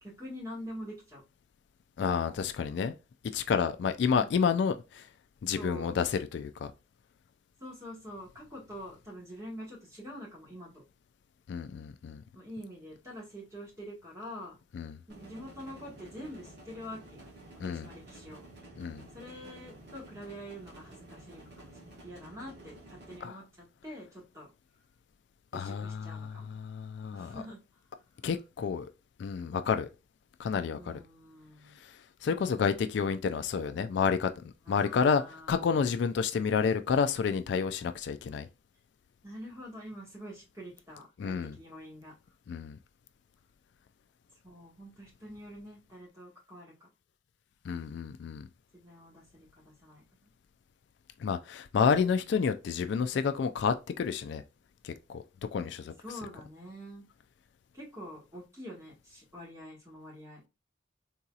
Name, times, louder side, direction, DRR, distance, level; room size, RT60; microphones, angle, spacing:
voice 1, 0.0-1.2 4.2-4.3 5.6-6.0 7.6-10.8 12.3-14.6 15.1-17.3 17.6-18.4 19.1-24.5 25.5-26.5 27.1-27.6 30.7-31.8 34.6-35.7 39.2-42.1 44.4-46.9 48.7-50.3 56.0-57.0 57.7-60.4, equal, 15° right, 1.6 m, -46 dB
voice 2, 2.0-2.9 3.3-5.1 5.4-6.7 11.5-12.2 14.7-15.0 17.6-17.9 18.8-19.0 23.2-23.4 25.5-27.4 28.2-28.9 29.2-29.9 30.4-31.0 31.8-32.0 32.2-35.2 35.5-38.5 41.2-41.6 42.5-42.8 47.6-48.5 51.2-54.4 54.8-55.2 55.5-55.9, left 6 dB, 65° left, 0.3 m, -30 dB
sound 1, 15.1-23.2, right 1 dB, 60° right, 1.4 m, -51 dB
3.8 x 2.8 x 2.3 m
head